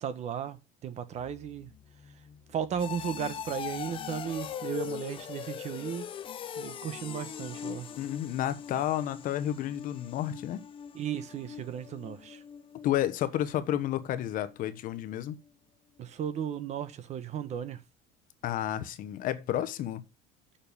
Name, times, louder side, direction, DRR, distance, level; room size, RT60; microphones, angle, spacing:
voice 1, 0.0-1.7 2.5-6.1 6.6-7.9 10.9-12.4 16.0-17.8, right 8 dB, 35° right, 1.1 m, -35 dB
sound 1, 1.2-13.8 14.2-14.6 15.0-15.1, left 8 dB, 25° left, 0.6 m, -41 dB
voice 2, 8.0-10.6 12.8-15.4 18.4-20.0, left 12 dB, 45° left, 1.0 m, -31 dB
7.2 x 5.7 x 6.9 m
cardioid pair, 165°, 20 cm